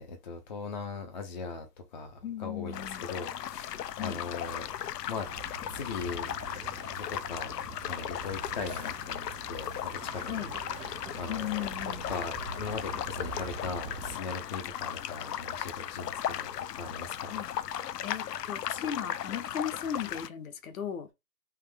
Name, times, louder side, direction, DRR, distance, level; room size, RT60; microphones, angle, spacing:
voice 1, 0.0-1.7 1.9-4.7 5.1-5.3 5.7-7.5 7.8-10.4 10.9-17.3, left 4 dB, 30° left, 0.5 m, -39 dB
voice 2, 2.2-3.1 3.9-4.2 10.2-10.5 11.3-12.1 17.3-17.5 18.0-21.1, left 9 dB, 55° left, 0.9 m, -37 dB
sound 1, 2.7-20.3, left 10 dB, 70° left, 0.5 m, -37 dB
sound 2, 5.2-14.2, right 5 dB, 60° right, 1.0 m, -45 dB
3.5 x 2.4 x 3.4 m
hypercardioid pair, 145°, 49 cm